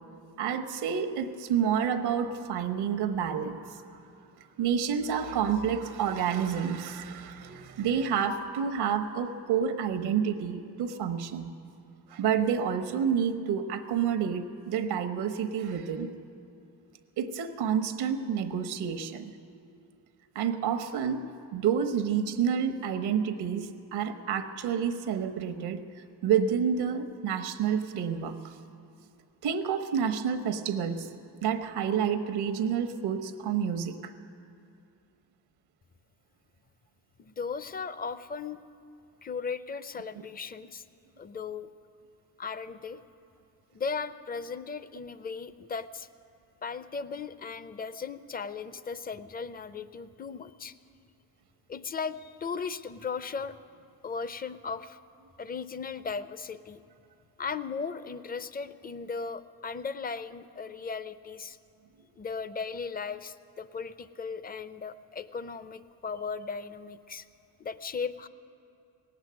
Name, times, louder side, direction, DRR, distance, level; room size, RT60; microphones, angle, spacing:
voice 1, 0.4-3.8 4.6-11.5 12.1-16.1 17.2-19.3 20.3-25.8 26.2-28.5 29.4-31.1 31.4-34.1, right 7 dB, 85° right, 8 dB, 1.0 m, -29 dB
voice 2, 37.2-38.6 39.2-40.8 41.2-41.7 42.4-43.0 43.7-46.1 46.6-50.7 51.7-53.5 54.0-55.0 55.4-56.8 57.4-61.6 62.2-67.2 67.6-68.3, left 5 dB, 25° left, 14 dB, 0.5 m, -37 dB
18.0 x 8.1 x 9.4 m, 2.5 s
cardioid pair, 95°, 38 cm